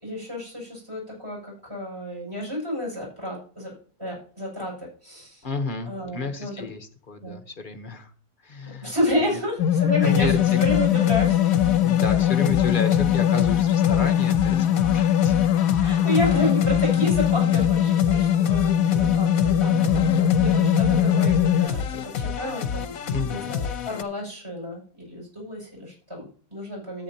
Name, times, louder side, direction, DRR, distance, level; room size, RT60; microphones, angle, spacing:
voice 1, 0.0-3.7 4.0-5.4 5.9-6.5 7.2-7.4 8.8-11.4 15.8-23.0 23.3-27.0, left 1 dB, 15° right, -2 dB, 6.1 m, -30 dB
voice 2, 5.4-8.1 8.4-8.9 9.2-9.4 10.0-10.6 11.7-15.4 16.3-16.4 17.4-17.6 19.7-20.3 20.9-21.2 23.1-23.6, left 3 dB, 35° left, 6 dB, 1.0 m, -32 dB
sound 1, 9.6-21.7, left 10 dB, 85° left, 1.2 m, -21 dB
sound 2, 10.0-24.0, left 7 dB, 65° left, 1.2 m, -31 dB
13.5 x 8.9 x 2.8 m, 0.43 s
omnidirectional pair, 1.7 m